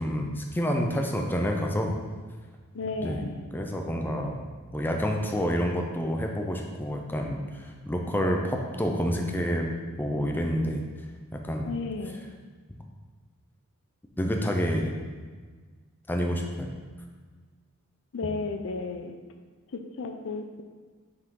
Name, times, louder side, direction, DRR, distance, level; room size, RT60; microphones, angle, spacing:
voice 1, 0.0-2.0 3.0-3.2 3.5-4.4 4.7-9.7 10.0-10.8 11.3-11.7 14.2-14.9 16.1-16.7, equal, 10° left, 1 dB, 0.5 m, -28 dB
voice 2, 2.7-3.5 11.6-12.2 18.1-19.1 19.7-20.6, left 3 dB, 65° left, 6 dB, 0.5 m, -33 dB
6.1 x 4.7 x 3.7 m, 1.5 s
head